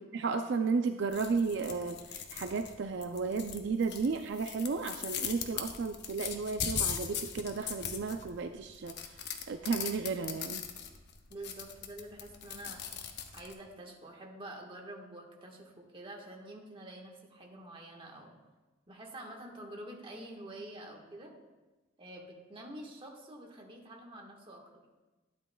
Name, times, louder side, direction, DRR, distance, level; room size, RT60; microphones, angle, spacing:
voice 1, 0.1-10.6, right 4 dB, 65° right, 7 dB, 0.4 m, -33 dB
sound 1, 1.1-13.5, left 7 dB, 60° left, 0.8 m, -40 dB
voice 2, 11.3-12.8 13.3-18.3 18.9-21.3 22.0-24.8, right 1 dB, 30° right, 0 dB, 1.4 m, -47 dB
12.0 x 9.8 x 2.3 m, 1.2 s
head